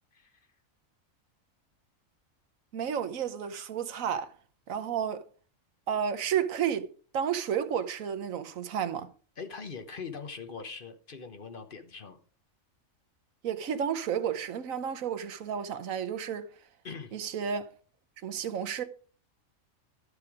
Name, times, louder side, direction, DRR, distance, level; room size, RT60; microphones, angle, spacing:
voice 1, 2.7-4.3 4.7-5.3 5.9-9.1 13.4-16.4 17.1-17.7 18.2-18.8, right 8 dB, 85° right, 1.3 m, -31 dB
voice 2, 9.4-12.2 16.8-17.1, left 5 dB, 45° left, 1.1 m, -42 dB
12.0 x 6.8 x 4.8 m
omnidirectional pair, 1.4 m